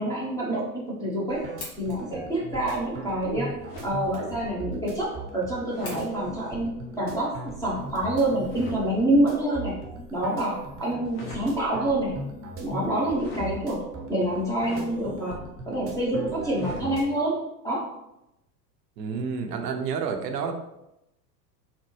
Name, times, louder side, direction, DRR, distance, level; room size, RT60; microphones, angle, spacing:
voice 1, 0.0-1.4 1.8-3.5 3.8-9.8 10.1-12.1 12.6-15.4 15.7-17.4 17.6-17.9, right 1 dB, 5° left, -6 dB, 0.8 m, -27 dB
sound 1, 1.3-17.1, right 2 dB, 25° right, 0.8 m, -39 dB
sound 2, 1.6-8.6, left 2 dB, 70° left, 1.4 m, -47 dB
sound 3, 3.7-4.1 5.7-6.1 8.5-8.8 11.0-11.5 13.1-13.5 14.6-14.9 16.6-16.9, left 2 dB, 40° left, 1.2 m, -41 dB
voice 2, 19.0-20.5, right 6 dB, 75° right, 5 dB, 0.7 m, -29 dB
4.1 x 2.1 x 3.1 m, 0.87 s
hypercardioid pair, 85°, 50 cm